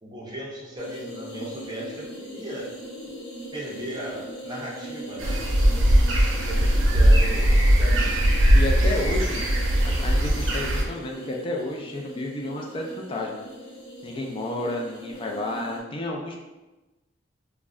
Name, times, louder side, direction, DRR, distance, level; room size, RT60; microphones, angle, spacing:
voice 1, 0.0-2.7 3.5-5.4 6.3-8.3 8.8-9.2, right 1 dB, 20° right, -4 dB, 0.5 m, -37 dB
sound 1, 0.8-15.8, equal, 75° left, 0.8 m, -40 dB
sound 2, 5.2-10.8, equal, 90° right, 0.5 m, -19 dB
voice 2, 8.5-9.4 9.8-13.5 14.0-16.4, left 2 dB, 30° left, 0 dB, 0.3 m, -31 dB
2.3 x 2.0 x 3.5 m, 1.1 s
head